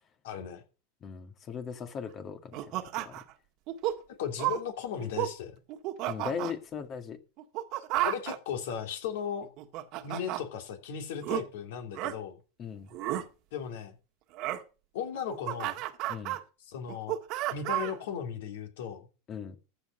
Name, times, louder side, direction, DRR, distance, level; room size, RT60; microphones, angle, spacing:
voice 1, 0.2-0.6 4.1-5.5 8.0-9.5 10.0-12.4 13.5-13.9 14.9-15.8 16.6-17.2 17.5-19.1, left 8 dB, 65° left, 3.0 m, -36 dB
voice 2, 1.0-3.2 6.1-7.2 12.6-12.9 16.1-16.4 19.3-19.6, left 6 dB, 35° left, 1.8 m, -38 dB
Sebastian Denzer - Monkey, 2.5-3.3 3.7-4.0 4.4-4.6 5.0-5.3 5.7-6.5 7.4-8.4 9.4-10.4 11.2-11.4 11.9-12.1 12.9-13.2 14.4-14.6 15.1-16.4 16.9-18.0, right 15 dB, 50° right, 1.6 m, -32 dB
14.5 x 5.6 x 6.5 m
hypercardioid pair, 95°, 0 cm